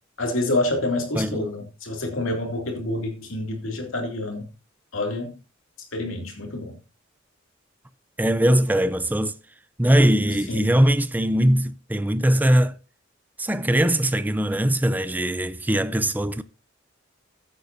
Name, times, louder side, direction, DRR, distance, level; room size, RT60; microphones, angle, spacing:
voice 1, 0.2-4.5 4.9-5.3 5.9-6.8 10.5-10.7, left 2 dB, 85° left, 2.5 m, -27 dB
voice 2, 1.2-1.5 8.2-9.3 9.8-12.7 13.4-16.4, right 1 dB, 10° right, 0.5 m, -21 dB
14.5 x 8.5 x 2.6 m
head